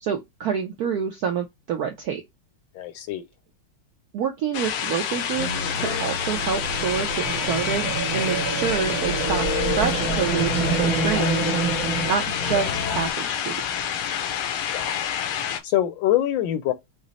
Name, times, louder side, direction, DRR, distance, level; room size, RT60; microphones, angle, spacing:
voice 1, 0.0-2.2 4.1-9.5 9.8-11.7 12.0-13.9, right 7 dB, 75° right, 0.8 m, -28 dB
voice 2, 2.7-3.2 14.7-15.0 15.6-16.7, left 13 dB, 75° left, 1.2 m, -24 dB
sound 1, 4.5-15.6, left 9 dB, 90° left, 1.5 m, -28 dB
sound 2, 5.4-13.1, left 4 dB, 55° left, 0.9 m, -32 dB
sound 3, 6.3-12.1, right 5 dB, 55° right, 1.2 m, -27 dB
5.1 x 2.0 x 4.0 m
omnidirectional pair, 2.3 m